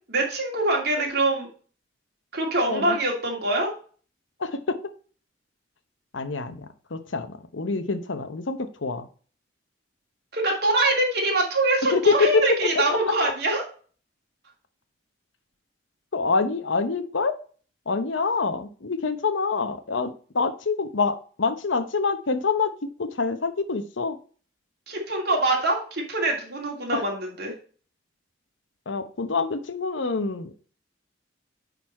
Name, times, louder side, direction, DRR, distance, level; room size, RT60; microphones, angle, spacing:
voice 1, 0.1-1.5 2.3-3.7 10.3-13.6 24.9-27.5, right 2 dB, 60° right, 0 dB, 2.6 m, -24 dB
voice 2, 4.4-4.8 6.1-9.1 11.9-12.1 13.1-13.2 16.1-17.3 17.9-22.7 23.0-24.2 26.9-27.0 28.9-30.5, left 4 dB, 85° left, 10 dB, 0.9 m, -26 dB
9.2 x 4.0 x 4.2 m, 0.41 s
head